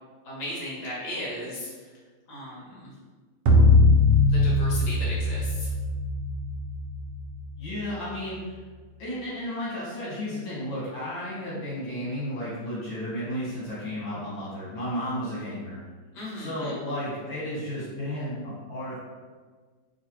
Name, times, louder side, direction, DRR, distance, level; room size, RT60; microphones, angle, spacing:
voice 1, 0.2-1.9 2.3-2.9 4.3-5.7 16.1-16.7, left 1 dB, 60° left, -7 dB, 1.8 m, -36 dB
sound 1, 3.5-7.9, left 2 dB, 75° right, 1.1 m, -21 dB
voice 2, 7.6-8.6 9.0-15.8 16.4-19.0, equal, 80° left, -9 dB, 1.7 m, -33 dB
3.9 x 2.5 x 2.8 m, 1.4 s
omnidirectional pair, 2.1 m